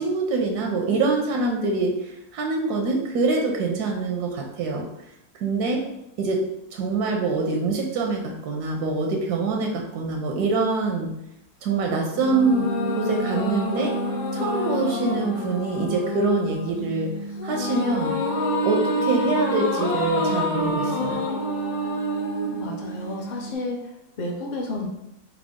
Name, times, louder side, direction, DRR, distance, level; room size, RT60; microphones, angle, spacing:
voice 1, 0.0-4.9 5.4-5.9 6.2-6.5 6.7-11.1 11.6-14.0 14.3-17.1 17.4-18.2 18.6-21.3, right 3 dB, 85° right, 1 dB, 1.1 m, -25 dB
sound 1, 12.2-23.5, equal, 80° left, 1.3 m, -27 dB
voice 2, 22.4-24.9, left 2 dB, 55° left, 0 dB, 0.5 m, -32 dB
4.6 x 2.1 x 3.5 m, 0.85 s
omnidirectional pair, 1.6 m